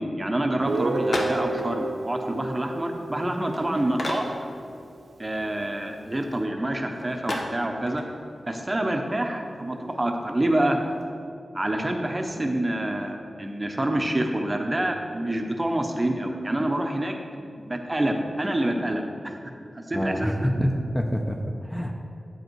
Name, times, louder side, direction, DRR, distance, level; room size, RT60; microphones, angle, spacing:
voice 1, 0.0-4.2 5.2-8.0 8.4-10.8 11.5-17.2 17.6-19.4 19.9-20.5, right 1 dB, 25° right, 3 dB, 0.8 m, -27 dB
sound 1, 0.6-11.1, left 1 dB, 65° left, 1.1 m, -37 dB
Guitar, 0.7-4.5, right 2 dB, 85° right, 0.4 m, -31 dB
voice 2, 19.9-21.9, equal, 5° left, 2 dB, 0.6 m, -26 dB
8.8 x 5.2 x 4.6 m, 2.4 s
wide cardioid pair, 65°, 0 cm